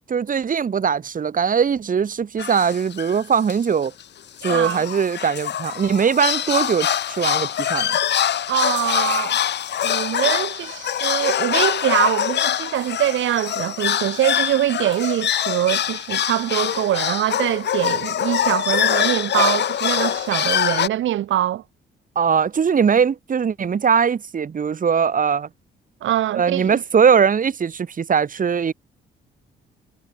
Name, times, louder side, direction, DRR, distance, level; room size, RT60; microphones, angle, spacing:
voice 1, 0.1-3.9 4.4-8.0 22.2-25.5 26.3-28.7, right 6 dB, 45° right, 2.2 m, -20 dB
sound 1, 2.4-3.2 3.5-3.6 3.8-4.0 4.4-20.9, left 10 dB, 60° left, 1.9 m, -24 dB
voice 2, 4.5-4.8 8.5-9.4 9.8-21.6 26.0-26.8, right 13 dB, 75° right, 1.8 m, -23 dB
cardioid pair, 90°, 20 cm